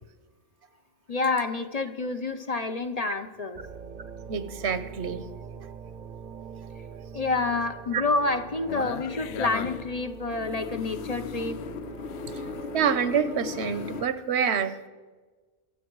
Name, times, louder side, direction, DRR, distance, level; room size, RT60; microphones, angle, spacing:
voice 1, 1.1-3.6 7.1-11.6, left 3 dB, 40° left, 8 dB, 0.7 m, -28 dB
sound 1, 3.5-14.1, right 6 dB, 50° right, 0.7 m, -43 dB
voice 2, 4.3-5.3 7.9-8.0 12.7-14.8, right 7 dB, 80° right, 12 dB, 1.1 m, -26 dB
sound 2, 8.7-10.0 10.3-14.0, left 9 dB, 80° left, 0.8 m, -37 dB
23.5 x 7.9 x 4.7 m, 1.3 s
omnidirectional pair, 1.1 m